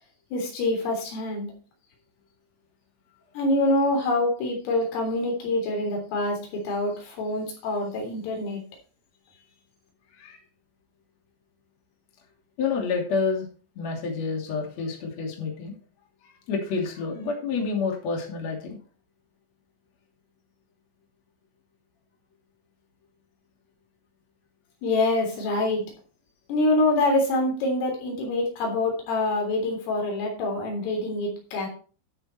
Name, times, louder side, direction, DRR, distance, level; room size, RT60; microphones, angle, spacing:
voice 1, 0.3-1.5 3.4-8.6 24.8-25.9 26.5-31.7, left 2 dB, 85° left, 1 dB, 6.1 m, -25 dB
voice 2, 12.6-13.5 13.7-15.7 16.5-18.8, left 4 dB, 40° left, 0 dB, 3.4 m, -28 dB
12.0 x 6.8 x 4.5 m, 0.38 s
omnidirectional pair, 5.7 m